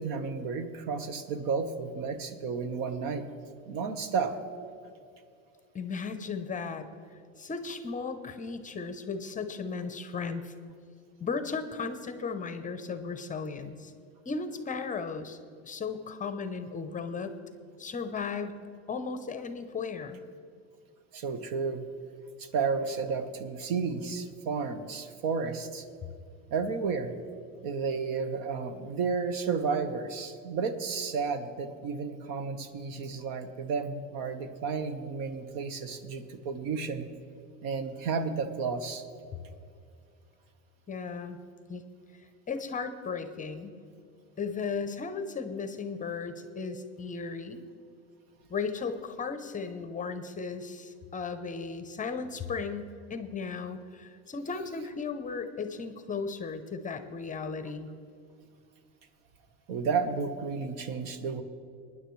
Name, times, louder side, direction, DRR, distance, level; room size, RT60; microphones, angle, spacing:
voice 1, 0.0-3.3 3.7-4.4 21.1-21.9 22.4-25.8 26.5-27.1 27.6-37.1 37.6-39.0 59.7-61.4, right 5 dB, 60° right, 10 dB, 1.2 m, -32 dB
voice 2, 5.7-6.9 7.4-10.5 11.2-13.9 14.3-15.4 15.6-17.4 17.8-18.6 18.9-20.2 40.9-41.4 41.7-41.8 42.1-43.8 44.4-47.6 48.5-57.9, left 5 dB, 20° left, 9 dB, 0.7 m, -36 dB
19.5 x 10.0 x 3.2 m, 2.4 s
supercardioid pair, 120°, 37 cm